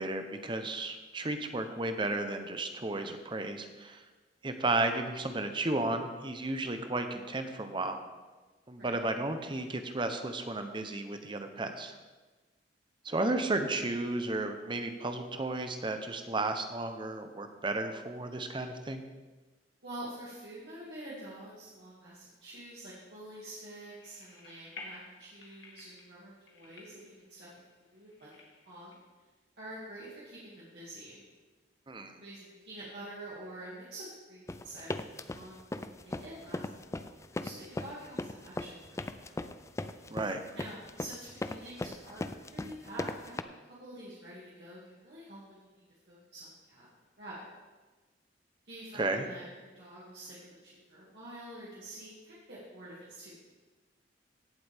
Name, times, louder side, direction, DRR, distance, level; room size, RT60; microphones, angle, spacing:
voice 1, 0.0-4.0 4.4-8.0 8.7-12.0 13.0-19.0 31.9-32.1 40.1-40.4 48.9-49.3, right 2 dB, 25° right, 7 dB, 0.8 m, -33 dB
voice 2, 19.8-27.5 27.8-28.9 29.6-31.2 32.2-35.0 35.3-39.4 40.5-46.9 47.2-47.5 48.6-53.3, right 1 dB, 65° right, -8 dB, 2.4 m, -47 dB
sound 1, 23.4-28.9, left 3 dB, 70° left, 2.4 m, -53 dB
sound 2, 34.5-43.4, left 2 dB, 15° left, 0.3 m, -38 dB
16.5 x 7.7 x 3.6 m, 1.3 s
head